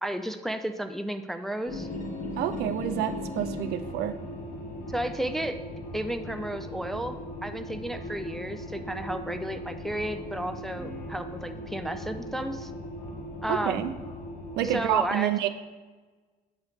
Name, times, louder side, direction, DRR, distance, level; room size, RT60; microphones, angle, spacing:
voice 1, 0.0-1.9 4.9-5.6 5.9-12.7 13.4-13.8 14.6-15.3, right 1 dB, ahead, 7 dB, 0.3 m, -33 dB
sound 1, 1.7-14.9, left 1 dB, 45° left, 1.2 m, -38 dB
voice 2, 2.4-4.2 13.5-13.9 14.6-15.5, right 11 dB, 75° right, 10 dB, 0.5 m, -28 dB
8.3 x 3.1 x 4.9 m, 1.3 s
cardioid pair, 110°, 17 cm